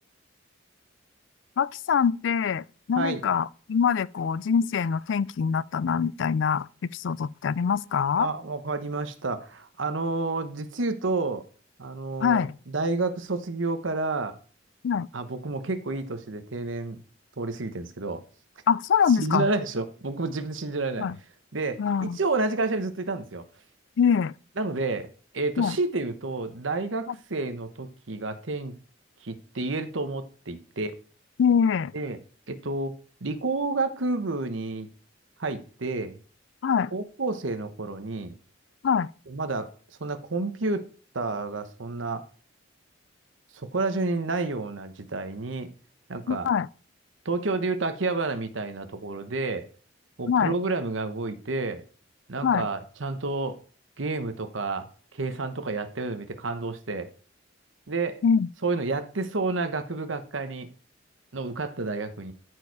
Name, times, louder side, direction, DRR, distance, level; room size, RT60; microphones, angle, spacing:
voice 1, 1.6-8.3 12.2-12.6 14.8-15.1 18.7-19.5 21.0-21.2 21.8-22.2 24.0-24.3 25.6-25.8 31.4-31.9 36.6-36.9 38.8-39.1 46.3-46.7 50.3-50.5 52.4-52.7 58.2-58.5, left 6 dB, 65° left, 0.4 m, -24 dB
voice 2, 8.2-11.4 11.8-14.4 15.1-17.0 17.4-18.2 19.2-21.1 21.5-23.4 24.6-25.1 25.3-28.7 29.2-31.0 31.9-32.2 32.5-32.9 33.2-34.9 35.4-36.2 36.9-38.3 39.3-39.7 40.0-40.8 41.1-42.2 43.5-45.7 46.1-46.5 47.2-49.7 50.2-51.8 52.3-53.6 54.0-57.1 57.9-58.2 58.6-60.7 61.3-62.3, right 3 dB, 75° right, 1.1 m, -30 dB
13.5 x 4.7 x 4.7 m
head